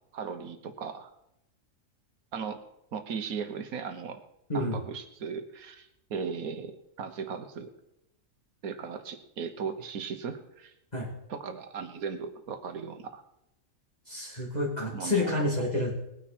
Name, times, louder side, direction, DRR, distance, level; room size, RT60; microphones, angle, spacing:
voice 1, 0.1-1.1 2.3-2.6 2.9-4.2 4.5-7.7 8.6-10.7 11.3-13.2 14.9-15.5, right 6 dB, 85° right, 9 dB, 1.5 m, -37 dB
voice 2, 14.1-15.9, left 2 dB, 30° left, -7 dB, 2.8 m, -29 dB
20.0 x 9.5 x 4.4 m, 0.85 s
omnidirectional pair, 1.5 m